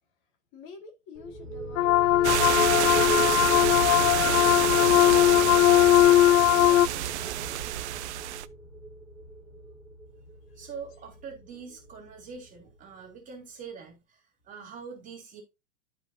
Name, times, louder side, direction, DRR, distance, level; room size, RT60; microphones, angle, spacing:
voice 1, 0.5-6.1 6.6-7.6 10.5-10.6, left 4 dB, 30° left, 2.2 m, -47 dB
sound 1, 1.1-12.7, right 3 dB, ahead, 2.7 m, -37 dB
sound 2, 1.8-6.9, left 15 dB, 65° left, 0.5 m, -20 dB
sound 3, 2.2-8.5, right 14 dB, 55° right, 0.8 m, -28 dB
voice 2, 10.5-15.4, right 6 dB, 20° right, 3.2 m, -44 dB
13.0 x 5.2 x 2.7 m
supercardioid pair, 160°, 41 cm